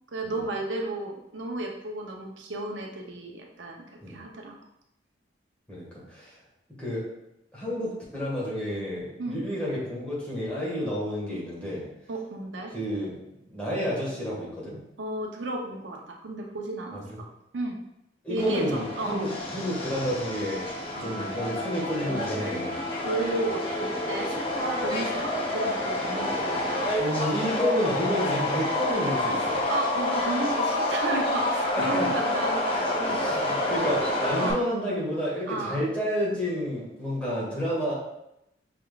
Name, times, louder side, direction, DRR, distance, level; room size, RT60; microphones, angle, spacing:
voice 1, 0.1-4.6 9.2-9.4 12.1-12.7 15.0-17.0 17.5-17.8 18.3-19.2 21.0-21.1 23.0-26.9 29.7-33.0 34.4-34.6 35.5-35.8, right 2 dB, 80° right, 1 dB, 0.6 m, -33 dB
voice 2, 5.7-6.3 6.8-7.0 7.5-11.8 12.7-13.2 13.5-14.8 16.9-17.0 18.2-20.7 21.0-22.7 27.0-29.7 31.7-32.1 33.0-37.9, equal, 5° left, -7 dB, 1.5 m, -30 dB
Subway metro underground, 18.4-34.5, left 1 dB, 30° left, 0.7 m, -28 dB
5.7 x 3.5 x 2.3 m, 0.84 s
head